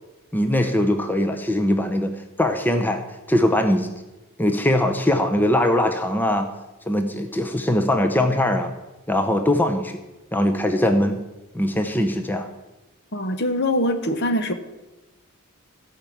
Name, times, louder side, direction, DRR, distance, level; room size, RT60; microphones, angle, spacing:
voice 1, 0.3-3.0 3.3-3.9 4.4-6.5 6.9-8.7 9.1-10.0 10.3-11.2 11.5-12.5, left 1 dB, 10° left, 6 dB, 0.8 m, -21 dB
voice 2, 13.1-14.5, left 1 dB, 50° left, 9 dB, 1.2 m, -23 dB
16.0 x 5.8 x 8.6 m, 1.1 s
head